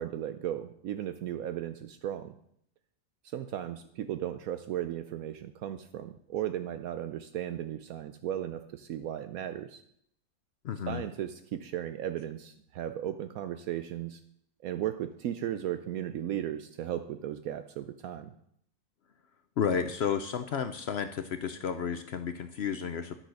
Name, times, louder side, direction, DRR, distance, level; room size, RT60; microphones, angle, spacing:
voice 1, 0.0-2.3 3.2-9.8 10.9-14.2 14.6-18.3, right 11 dB, 75° right, 9 dB, 1.0 m, -36 dB
voice 2, 10.6-11.0 19.6-23.1, left 7 dB, 60° left, 9 dB, 0.7 m, -32 dB
10.5 x 6.2 x 6.4 m, 0.69 s
omnidirectional pair, 1.6 m